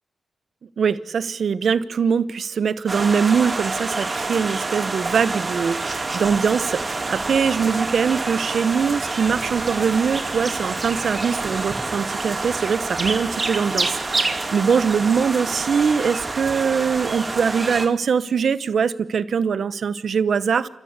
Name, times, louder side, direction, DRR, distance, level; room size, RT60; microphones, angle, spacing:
voice 1, 0.8-20.7, right 6 dB, 70° right, 15 dB, 1.0 m, -22 dB
sound 1, 2.9-17.9, right 3 dB, 35° right, 2.7 m, -27 dB
28.5 x 14.5 x 8.2 m, 0.97 s
cardioid pair, 55°, 0 cm